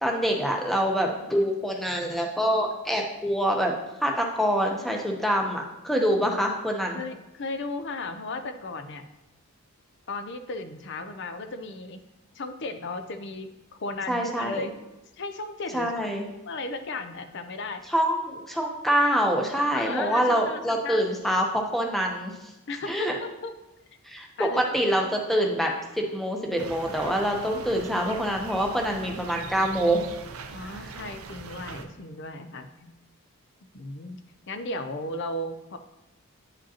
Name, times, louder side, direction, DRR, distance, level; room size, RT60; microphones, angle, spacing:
voice 1, 0.0-3.7 4.0-7.0 14.1-14.7 15.7-16.2 17.9-22.5 22.9-23.2 24.0-25.7 26.0-30.0 30.6-30.8, equal, ahead, 0 dB, 0.8 m, -25 dB
voice 2, 6.9-9.1 10.1-12.0 12.3-13.5 13.8-14.8 15.2-16.0 16.5-17.8 19.7-21.1 22.7-23.5 24.4-24.8 30.5-33.0 33.7-34.2 34.5-35.8, left 2 dB, 55° left, 8 dB, 0.5 m, -35 dB
sound 1, 26.6-31.8, right 4 dB, 80° right, 0.6 m, -41 dB
10.0 x 5.0 x 2.9 m, 1.0 s
head